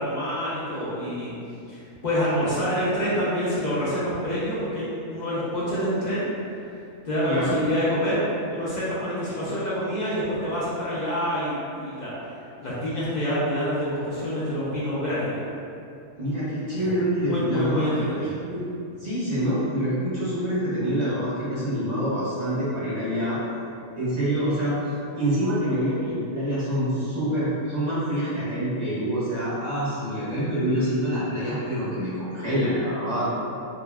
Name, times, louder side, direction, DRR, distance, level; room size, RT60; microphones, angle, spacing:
voice 1, 0.0-1.3 1.7-6.3 7.0-8.2 8.5-12.1 12.6-15.5 16.8-16.9 17.2-18.4, equal, 55° left, -9 dB, 0.5 m, -27 dB
voice 2, 7.2-7.5 16.2-18.0 18.4-18.6 19.0-23.4 23.9-24.8 25.1-33.3, equal, 35° right, -11 dB, 0.7 m, -26 dB
3.6 x 2.0 x 2.2 m, 2.6 s
omnidirectional pair, 1.4 m